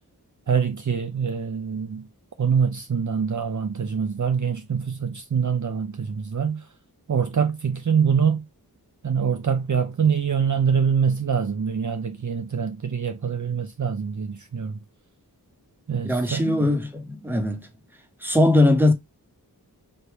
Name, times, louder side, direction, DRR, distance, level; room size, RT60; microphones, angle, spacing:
voice 1, 0.5-2.1 2.4-6.7 7.1-8.4 9.0-14.8 15.9-16.7, right 6 dB, 50° right, 0.6 m, -24 dB
voice 2, 16.0-17.7 18.2-18.9, left 1 dB, 5° right, 1.2 m, -20 dB
3.5 x 2.6 x 4.6 m
wide cardioid pair, 40°, 39 cm